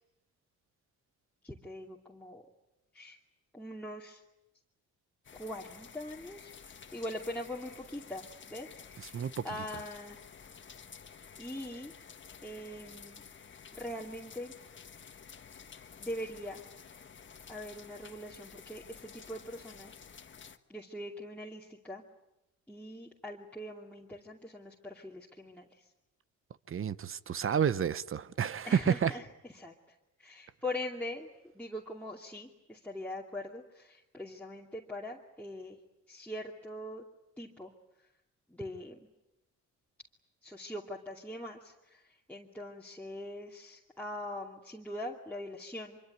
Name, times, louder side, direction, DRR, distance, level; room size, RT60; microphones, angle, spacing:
voice 1, 1.4-2.4 2.9-3.2 3.5-4.2 5.4-8.7 8.9-10.2 11.4-11.9 12.4-13.2 13.7-14.5 16.0-16.6 17.5-19.9 20.7-22.0 22.7-25.7 28.6-29.2 29.5-29.7 30.2-31.3 31.5-35.8 36.1-37.0 37.4-37.7 38.5-39.0 40.4-42.0 42.3-46.0, left 1 dB, 5° left, 2.7 m, -42 dB
sound 1, 5.2-20.6, left 6 dB, 40° left, 1.6 m, -52 dB
voice 2, 9.0-9.4 26.7-29.1, right 8 dB, 45° right, 0.9 m, -30 dB
25.0 x 24.5 x 9.3 m
cardioid pair, 90°, 30 cm